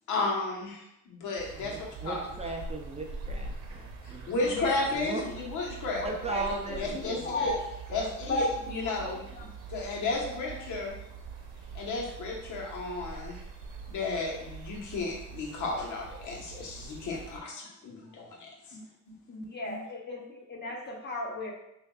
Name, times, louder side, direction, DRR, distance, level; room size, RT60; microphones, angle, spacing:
voice 1, 0.1-1.8 2.0-2.2 4.0-5.2 5.5-6.1 6.3-6.5 6.8-7.5 7.9-9.3 9.7-10.9 11.7-13.4 13.9-18.8 19.1-19.2 19.6-19.8, left 3 dB, 80° left, -2 dB, 1.1 m, -33 dB
sound 1, 1.4-17.4, right 4 dB, 75° right, 0.8 m, -44 dB
voice 2, 1.6-5.2 5.7-5.8 6.0-7.6 9.0-9.1 19.6-19.7, right 3 dB, 20° right, 1 dB, 0.5 m, -38 dB
voice 3, 6.0-6.4 6.9-7.6 8.3-8.5 8.8-9.0 9.4-9.5 10.4-10.5 18.7-18.8 19.3-21.5, left 2 dB, 35° left, 0 dB, 1.0 m, -34 dB
6.2 x 2.6 x 2.3 m, 0.85 s
cardioid pair, 90°, 30 cm